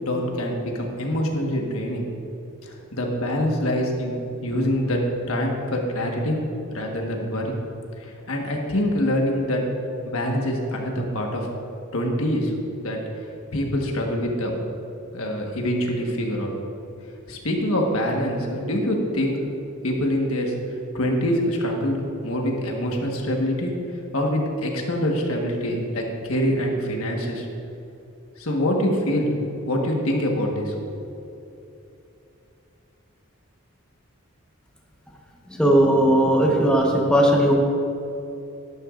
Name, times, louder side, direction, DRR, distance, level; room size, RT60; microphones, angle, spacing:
voice 1, 0.0-2.0 2.6-4.1 4.4-5.0 5.3-6.4 6.7-7.5 8.0-9.6 10.1-11.5 11.9-12.5 12.8-13.0 13.5-14.5 15.1-16.5 17.3-19.4 19.8-20.5 20.9-23.7 24.1-27.5 28.4-29.4 29.7-31.1, equal, 80° left, 0 dB, 1.4 m, -25 dB
voice 2, 35.5-37.5, right 1 dB, 5° left, -2 dB, 1.1 m, -18 dB
11.5 x 11.0 x 2.5 m, 2.8 s
head